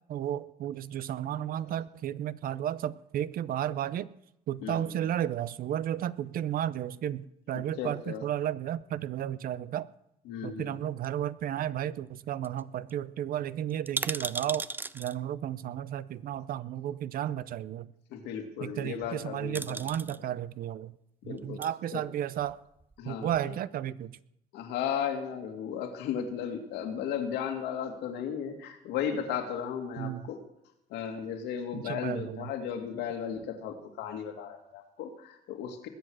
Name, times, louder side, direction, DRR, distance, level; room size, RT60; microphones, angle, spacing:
voice 1, 0.1-4.1 4.5-9.9 10.4-14.7 14.9-17.9 18.6-20.9 21.2-22.6 23.0-24.2 30.0-30.2 31.7-32.5, right 11 dB, 60° right, 0.6 m, -33 dB
voice 2, 4.6-5.0 7.8-8.3 10.3-10.8 18.1-20.0 21.2-21.6 21.9-22.0 23.0-23.5 24.5-30.4 30.9-35.9, left 8 dB, 90° left, 2.3 m, -35 dB
sound 1, 11.0-11.8 12.1-12.2 12.4-12.6 12.9-13.0 13.7-15.2 16.3-16.4 19.0-19.2 19.5-20.2 21.3-21.7 22.4-23.1 23.3-23.4, right 3 dB, 10° right, 0.4 m, -37 dB
20.5 x 8.0 x 6.3 m
cardioid pair, 110°, 17 cm